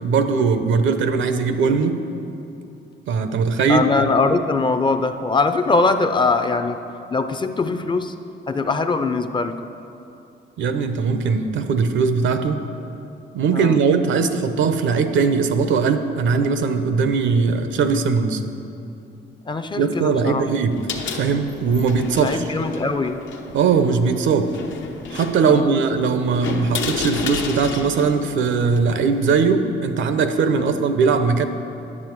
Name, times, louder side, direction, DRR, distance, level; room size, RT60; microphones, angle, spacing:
voice 1, 0.0-2.0 3.1-3.8 10.6-12.7 13.3-18.4 19.8-20.8 21.1-22.4 23.5-24.5 25.1-31.5, right 5 dB, 75° right, 9 dB, 0.7 m, -20 dB
voice 2, 3.7-6.8 7.1-8.2 8.5-9.7 13.5-13.8 19.5-20.5 22.2-23.2 25.4-25.7 30.6-30.8, left 3 dB, 25° left, 9 dB, 0.4 m, -21 dB
sound 1, 20.6-29.4, left 5 dB, 70° left, 0.9 m, -32 dB
9.8 x 7.0 x 4.6 m, 2.8 s
cardioid pair, 90°, 20 cm